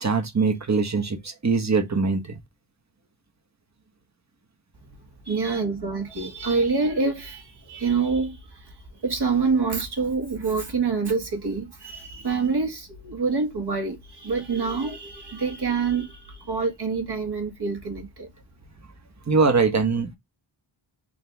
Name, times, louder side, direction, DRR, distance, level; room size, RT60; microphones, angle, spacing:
voice 1, 0.0-2.4 5.3-5.6 19.3-20.2, right 4 dB, 35° right, 1.1 m, -23 dB
voice 2, 5.3-8.7 9.0-18.3, right 4 dB, 50° right, 1.5 m, -26 dB
4.0 x 2.9 x 3.4 m
wide cardioid pair, 90°, 50 cm